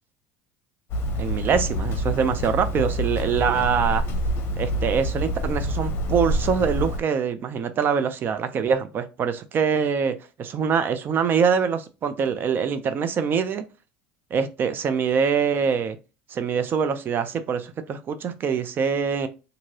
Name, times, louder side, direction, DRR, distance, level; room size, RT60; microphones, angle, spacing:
Hammer, 0.9-7.0, equal, 45° left, 0.6 m, -27 dB
voice 1, 1.2-4.0 4.6-13.6 14.3-16.0 16.3-19.3, right 6 dB, 40° right, 11 dB, 0.4 m, -24 dB
2.8 x 2.6 x 2.7 m, 0.30 s
supercardioid pair, 90°, 5 cm